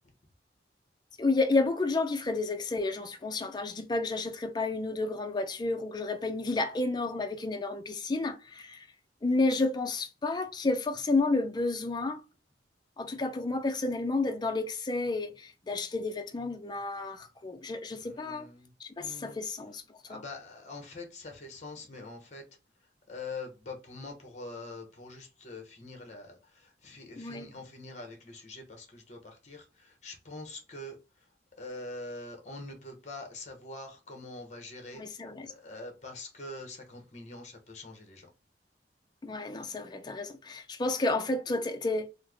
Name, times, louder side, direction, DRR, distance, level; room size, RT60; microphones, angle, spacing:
voice 1, 1.2-8.9 9.2-12.2 13.0-18.5 18.8-19.8 20.1-20.2 27.2-27.5 34.9-35.5 39.2-42.1, left 3 dB, 25° left, 0.4 m, -31 dB
voice 2, 18.0-18.7 19.0-19.4 20.1-22.4 23.1-26.4 26.8-29.6 30.0-30.9 31.6-35.0 35.6-38.3, left 2 dB, 40° left, 0.9 m, -44 dB
3.2 x 2.0 x 3.4 m
head